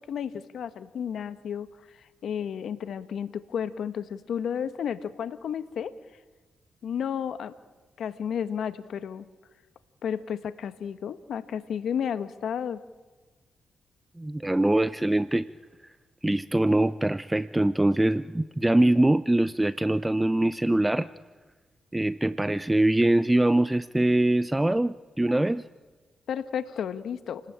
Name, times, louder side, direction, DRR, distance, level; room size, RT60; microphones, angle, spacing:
voice 1, 0.0-5.9 6.8-7.5 8.0-9.3 10.0-12.8 26.3-27.4, left 8 dB, 75° left, 12 dB, 1.3 m, -32 dB
voice 2, 14.2-15.5 16.2-21.1 21.9-25.6, right 1 dB, 15° right, 15 dB, 0.8 m, -23 dB
29.5 x 19.5 x 8.8 m, 1.3 s
supercardioid pair, 50°, 0 cm